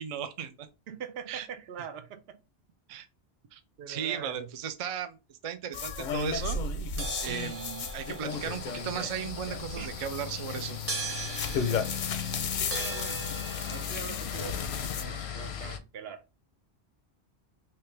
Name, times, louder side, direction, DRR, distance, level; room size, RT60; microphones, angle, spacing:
voice 1, 0.0-0.7 1.3-1.5 2.9-3.1 3.5-3.6 3.9-6.6 7.2-10.8, right 8 dB, 50° right, 0.4 m, -36 dB
voice 2, 0.9-2.4 3.8-4.5 7.3-7.5 9.8-9.9 12.6-13.3 13.7-16.2, right 7 dB, 80° right, 0.8 m, -43 dB
sound 1, 5.7-15.0, left 5 dB, 60° left, 0.6 m, -35 dB
sound 2, 7.0-13.9, right 3 dB, 15° right, 0.7 m, -40 dB
sound 3, 8.3-15.8, left 8 dB, 85° left, 0.8 m, -37 dB
3.3 x 2.9 x 3.2 m
omnidirectional pair, 1.0 m